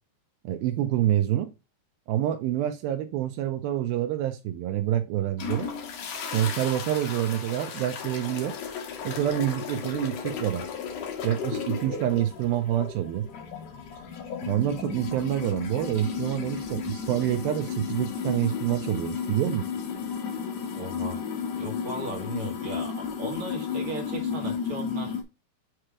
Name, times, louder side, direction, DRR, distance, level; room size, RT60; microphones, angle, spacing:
voice 1, 0.4-1.5 2.1-5.7 6.3-8.6 9.0-10.6 11.2-13.3 14.5-19.7, right 12 dB, 85° right, 2.2 m, -27 dB
sound 1, 5.4-25.2, left 6 dB, 80° left, 1.5 m, -34 dB
voice 2, 20.8-21.2 21.6-25.2, right 1 dB, 50° right, 1.7 m, -36 dB
7.7 x 3.0 x 4.9 m
omnidirectional pair, 4.9 m